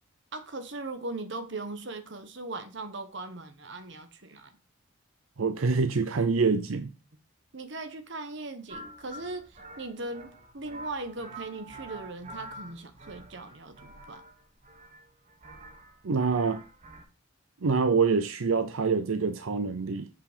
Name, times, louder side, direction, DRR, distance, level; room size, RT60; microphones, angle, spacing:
voice 1, 0.3-4.5 7.5-14.2, right 2 dB, 60° right, 1.2 m, -39 dB
voice 2, 5.4-6.9 16.0-16.6 17.6-20.1, right 4 dB, 80° right, 0.6 m, -26 dB
sound 1, 8.7-17.0, right 1 dB, 35° right, 1.2 m, -47 dB
6.9 x 5.6 x 5.0 m
head